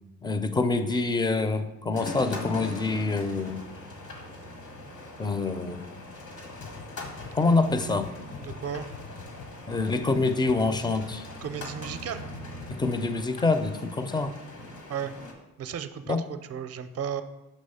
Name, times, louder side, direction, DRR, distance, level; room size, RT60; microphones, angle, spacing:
voice 1, 0.2-3.6 5.2-5.9 7.3-8.1 9.7-11.2 12.7-14.4 16.1-16.2, left 3 dB, 15° left, 10 dB, 0.4 m, -26 dB
sound 1, 1.9-15.3, left 2 dB, 70° left, 1.3 m, -42 dB
sound 2, 3.2-12.8, equal, 90° left, 1.7 m, -48 dB
sound 3, 6.6-11.5 11.9-12.9 13.2-13.3, left 6 dB, 55° left, 0.7 m, -43 dB
voice 2, 8.4-8.9 11.4-12.2 14.9-15.1 15.6-17.2, right 8 dB, 50° right, 10 dB, 0.5 m, -34 dB
6.4 x 3.1 x 5.5 m, 1.0 s
cardioid pair, 75°, 32 cm